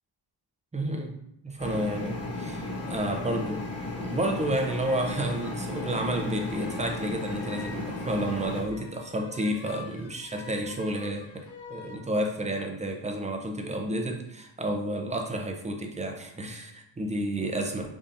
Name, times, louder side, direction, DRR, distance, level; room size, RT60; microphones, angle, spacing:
voice 1, 0.7-1.1 1.4-3.7 4.0-17.8, right 1 dB, 15° right, 3 dB, 0.6 m, -31 dB
sound 1, 1.6-8.6, left 2 dB, 35° left, 1.2 m, -35 dB
sound 2, 4.6-12.1, left 5 dB, 75° left, 0.8 m, -46 dB
5.3 x 3.5 x 2.6 m, 0.77 s
wide cardioid pair, 135°, 43 cm